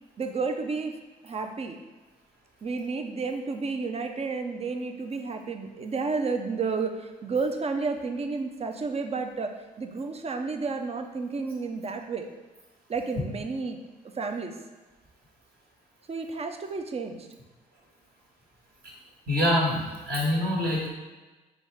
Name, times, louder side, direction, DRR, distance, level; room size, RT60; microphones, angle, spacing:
voice 1, 0.2-1.0 1.2-1.8 2.6-12.3 12.9-13.8 14.2-14.6 16.1-17.3, right 4 dB, 30° right, 5 dB, 0.6 m, -31 dB
voice 2, 19.3-20.9, left 1 dB, 45° right, -4 dB, 1.4 m, -25 dB
4.0 x 3.7 x 3.5 m, 1.2 s
figure-of-eight pair, 45°, 21 cm